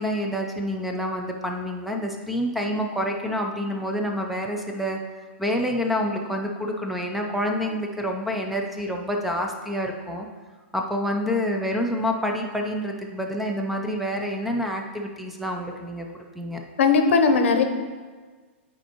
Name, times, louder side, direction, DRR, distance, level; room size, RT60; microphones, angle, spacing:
voice 1, 0.0-5.0 5.4-10.3 10.7-16.6, equal, ahead, 1 dB, 0.4 m, -28 dB
voice 2, 16.8-17.6, left 5 dB, 85° left, 6 dB, 0.8 m, -18 dB
9.7 x 4.4 x 2.9 m, 1.5 s
supercardioid pair, 160°, 7 cm